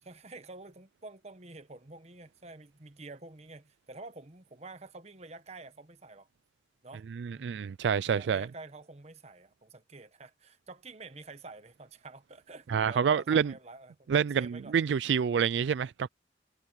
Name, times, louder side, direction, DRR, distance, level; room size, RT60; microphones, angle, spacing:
voice 1, 0.0-6.3 6.8-7.0 7.3-7.7 8.1-14.8, right 3 dB, 40° right, 1.3 m, -48 dB
voice 2, 7.2-8.5 12.7-13.5 14.1-16.1, right 7 dB, 80° right, 0.3 m, -27 dB
head